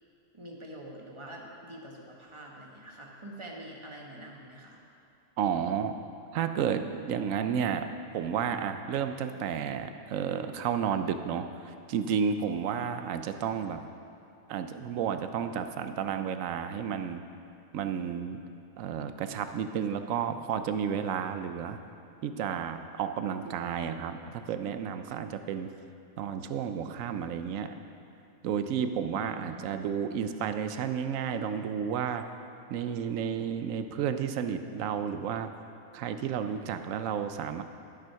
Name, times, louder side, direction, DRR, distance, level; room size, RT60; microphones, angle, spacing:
voice 1, 0.3-4.8 29.3-29.6, right 1 dB, 25° right, -1 dB, 1.1 m, -45 dB
voice 2, 5.4-5.9 6.3-7.9 8.1-13.8 14.5-17.2 17.7-18.4 18.8-21.8 22.2-25.7 26.2-27.7 28.4-32.2 32.7-35.5 35.9-37.6, right 7 dB, 85° right, 9 dB, 1.0 m, -32 dB
11.5 x 6.2 x 5.7 m, 2.6 s
omnidirectional pair, 1.3 m